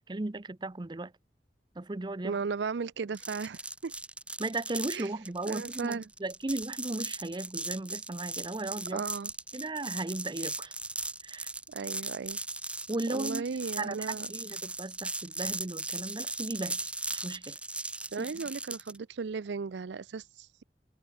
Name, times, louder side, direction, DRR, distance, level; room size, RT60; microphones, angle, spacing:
voice 1, 0.1-1.1 1.7-2.4 4.4-9.0 9.5-10.7 11.2-11.5 12.9-13.5 13.8-17.6 18.2-18.3, right 2 dB, 25° right, 0.6 m, -36 dB
voice 2, 2.2-3.9 4.9-5.1 5.5-6.0 8.9-9.3 11.7-12.4 13.1-14.3 18.1-20.6, right 5 dB, 85° right, 0.5 m, -36 dB
sound 1, 3.1-19.0, right 2 dB, 5° right, 1.4 m, -38 dB
head